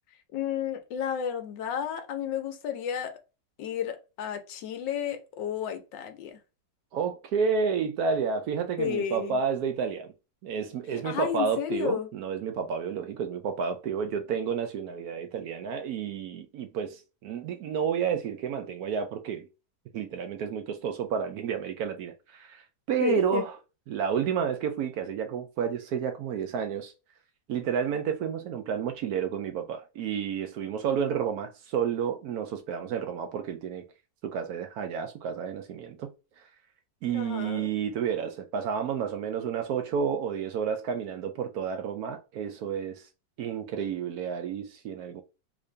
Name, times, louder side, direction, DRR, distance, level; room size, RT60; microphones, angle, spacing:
voice 1, 0.3-3.1 3.6-6.4 8.8-9.4 11.0-12.1 23.0-23.4 37.1-37.7, left 9 dB, 85° left, 1.4 m, -32 dB
voice 2, 6.9-10.1 10.4-19.5 19.9-23.6 23.9-26.9 27.5-33.8 34.2-36.1 36.4-36.5 37.0-43.0 43.4-45.2, right 7 dB, 70° right, 0.9 m, -30 dB
3.7 x 2.6 x 3.2 m
omnidirectional pair, 1.9 m